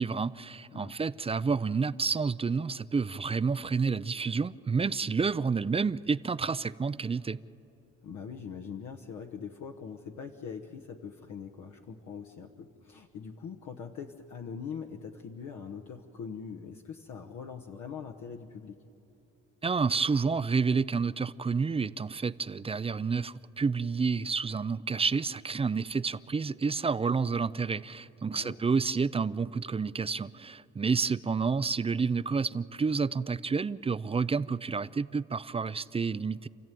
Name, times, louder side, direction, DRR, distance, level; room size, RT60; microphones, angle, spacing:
voice 1, 0.0-7.4 19.6-36.5, right 5 dB, 20° right, 0.4 m, -29 dB
voice 2, 8.0-18.8 28.3-28.6, left 6 dB, 70° left, 1.2 m, -42 dB
29.0 x 14.0 x 9.2 m
cardioid pair, 90°, 30 cm